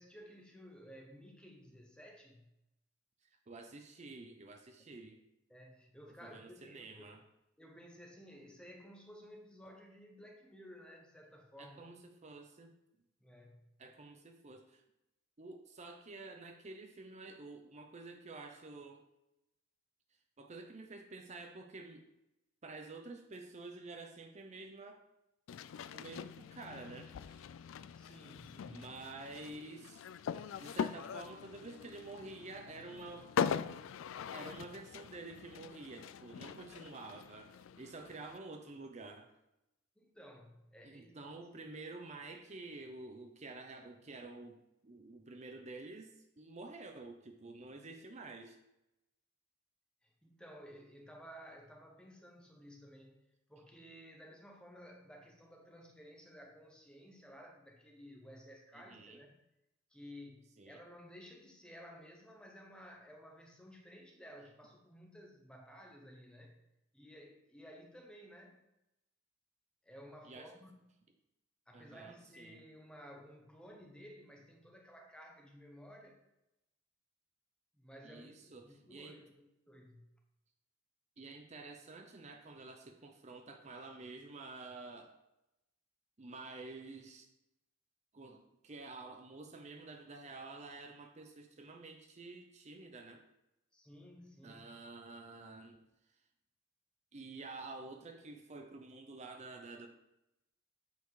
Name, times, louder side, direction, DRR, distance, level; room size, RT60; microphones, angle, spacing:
voice 1, 0.0-2.4 5.5-7.2 7.6-11.8 13.2-13.6 14.1-14.2 28.0-28.9 40.0-41.2 41.5-41.6 50.0-59.4 59.9-66.6 66.9-68.6 69.8-70.9 71.7-76.2 77.8-78.3 78.6-80.1 93.7-94.7, equal, 5° left, 1 dB, 1.0 m, -55 dB
voice 2, 3.5-5.2 6.2-7.2 11.6-12.7 13.8-14.8 15.4-19.1 20.4-22.1 22.6-25.0 25.9-27.5 28.7-30.0 30.6-33.3 34.3-39.3 40.8-48.6 58.7-59.2 60.6-60.8 70.2-70.5 71.7-72.6 78.0-79.2 81.2-85.2 86.2-87.3 88.1-93.2 94.4-95.8 97.1-99.9, right 3 dB, 35° right, 5 dB, 0.6 m, -49 dB
sound 1, 25.5-38.4, left 7 dB, 85° left, 0.3 m, -42 dB
8.2 x 4.3 x 4.7 m, 0.90 s
head